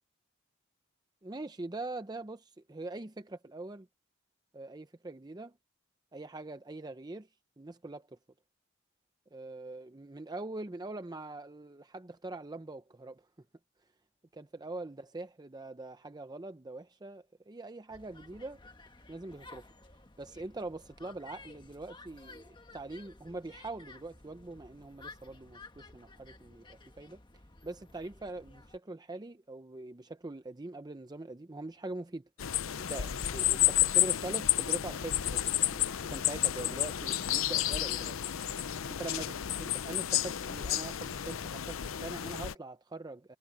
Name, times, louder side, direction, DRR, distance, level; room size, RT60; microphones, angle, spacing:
voice 1, 1.2-3.9 4.5-5.5 6.1-7.3 7.6-8.1 9.3-13.2 14.3-18.6 19.1-19.6 20.2-22.4 22.7-27.2 27.6-32.2 32.5-38.2 38.9-43.4, right 2 dB, 20° right, 0.6 m, -43 dB
sound 1, 17.9-28.8, left 3 dB, 25° left, 1.5 m, -54 dB
sound 2, 32.4-42.5, left 13 dB, 85° left, 0.6 m, -31 dB
head